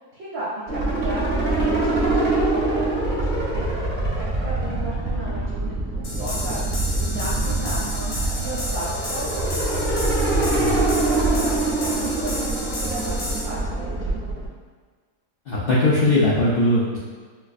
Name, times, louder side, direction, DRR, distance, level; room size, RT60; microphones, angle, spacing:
voice 1, 0.1-1.2 1.5-10.1 10.4-14.3, right 2 dB, 70° right, -10 dB, 1.2 m, -34 dB
sound 1, 0.7-14.5, right 2 dB, 45° right, 0.6 m, -24 dB
sound 2, 6.0-13.4, left 1 dB, 55° left, 0.8 m, -32 dB
voice 2, 10.4-10.8 15.5-17.0, left 1 dB, 80° left, -7 dB, 0.5 m, -20 dB
4.2 x 2.5 x 2.3 m, 1.5 s
omnidirectional pair, 1.6 m